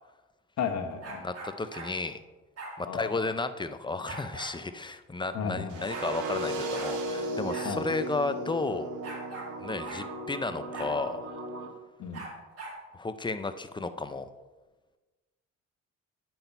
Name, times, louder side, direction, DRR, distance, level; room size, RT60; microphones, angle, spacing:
voice 1, 0.6-1.2 2.8-3.3 5.3-5.9 7.6-7.8 12.0-12.3, left 6 dB, 65° left, 4 dB, 1.3 m, -34 dB
sound 1, 1.0-1.9 2.6-2.8 4.1-4.5 5.4-5.5 5.7-6.1 6.7-6.9 7.5-7.7 8.0-8.1 9.0-9.5 9.8-10.0 10.7-10.9 12.1-12.8, right 2 dB, 55° right, 2.5 m, -41 dB
voice 2, 1.2-2.2 2.8-8.9 9.6-11.2 12.9-14.3, left 3 dB, 15° left, 10 dB, 0.6 m, -33 dB
sound 2, 5.7-11.7, right 1 dB, 80° right, 1.5 m, -36 dB
8.7 x 6.1 x 5.4 m, 1.2 s
cardioid pair, 90°, 30 cm